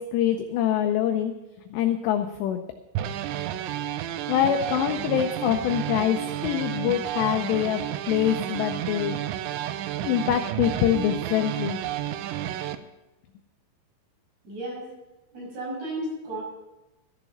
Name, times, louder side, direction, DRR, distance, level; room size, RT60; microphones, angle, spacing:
voice 1, 0.0-1.3 1.7-2.6 4.3-9.2 10.0-11.8, left 10 dB, 85° left, 6 dB, 2.4 m, -24 dB
sound 1, 3.0-12.8, right 12 dB, 85° right, 2.7 m, -31 dB
voice 2, 14.4-14.9 15.3-16.4, right 1 dB, 50° right, -4 dB, 7.9 m, -33 dB
14.5 x 7.1 x 7.0 m, 1.0 s
omnidirectional pair, 5.8 m